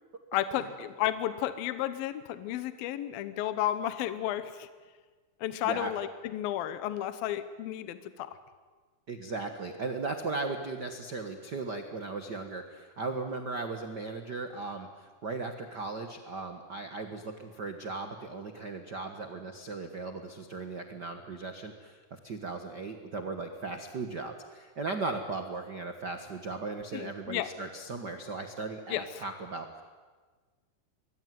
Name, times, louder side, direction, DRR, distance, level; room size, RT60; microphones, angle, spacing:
voice 1, 0.3-4.7 5.4-8.4 26.9-27.5 28.9-29.0, left 12 dB, 75° left, 12 dB, 2.7 m, -32 dB
voice 2, 9.1-29.8, right 3 dB, 80° right, 6 dB, 0.9 m, -37 dB
25.0 x 23.0 x 9.4 m, 1.4 s
omnidirectional pair, 4.5 m